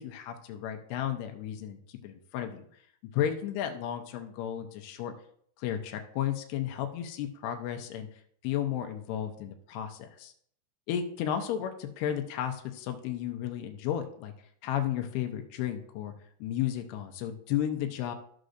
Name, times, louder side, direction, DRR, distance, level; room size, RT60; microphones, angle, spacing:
voice 1, 0.0-1.8 2.0-2.7 3.1-5.1 5.6-8.1 8.4-10.3 10.9-14.3 14.6-16.1 16.4-18.2, left 10 dB, 85° left, 5 dB, 2.8 m, -33 dB
13.5 x 6.4 x 2.6 m, 0.64 s
omnidirectional pair, 4.6 m